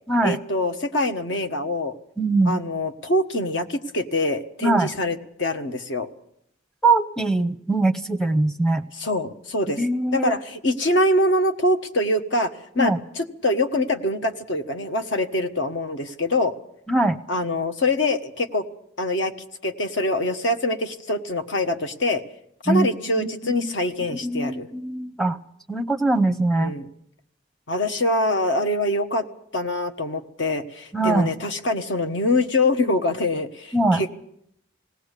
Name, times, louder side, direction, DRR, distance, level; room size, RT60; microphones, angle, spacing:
voice 1, 0.2-1.9 2.4-6.1 8.9-9.8 10.1-16.5 17.3-18.6 19.0-19.3 19.6-22.2 22.6-24.7 26.5-26.9 27.7-29.2 29.5-34.1, left 1 dB, 65° left, 7 dB, 1.3 m, -24 dB
voice 2, 2.2-2.6 4.6-4.9 6.8-8.8 9.8-10.3 12.8-13.0 16.9-17.2 22.7-22.9 23.1-23.6 24.1-25.4 25.7-26.7 30.9-31.3 33.7-34.0, right 2 dB, 5° left, 6 dB, 0.7 m, -22 dB
19.5 x 17.5 x 8.2 m, 0.75 s
head